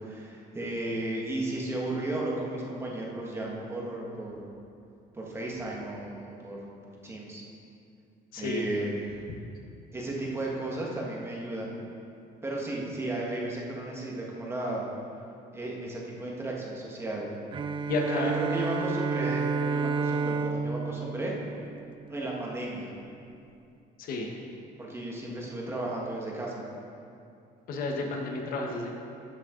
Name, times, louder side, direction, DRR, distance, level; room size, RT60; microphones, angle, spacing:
voice 1, 0.0-4.5 5.1-7.4 8.4-9.1 9.9-11.7 12.4-14.8 15.5-17.3 18.1-21.3 22.1-22.9 24.8-26.6, right 2 dB, 15° right, -3 dB, 1.7 m, -34 dB
voice 2, 8.3-8.7 17.9-18.3 24.0-24.3 27.7-29.0, left 2 dB, 60° left, 2 dB, 1.3 m, -31 dB
Bowed string instrument, 17.5-22.2, right 4 dB, 30° right, 0.4 m, -30 dB
12.5 x 7.5 x 3.9 m, 2.6 s
cardioid pair, 145°, 17 cm